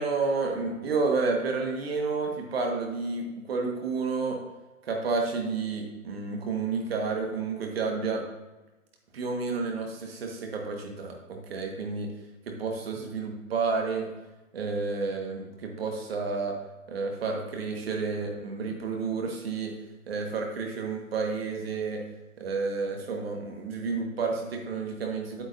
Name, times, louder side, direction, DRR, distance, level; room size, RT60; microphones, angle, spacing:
voice 1, 0.0-4.4 4.8-8.2 9.1-12.1 12.5-14.1 14.5-16.6 16.9-19.7 20.1-22.0 22.4-25.4, right 4 dB, 45° right, 2 dB, 1.5 m, -30 dB
8.6 x 7.7 x 2.6 m, 1.1 s
figure-of-eight pair, 140°, 43 cm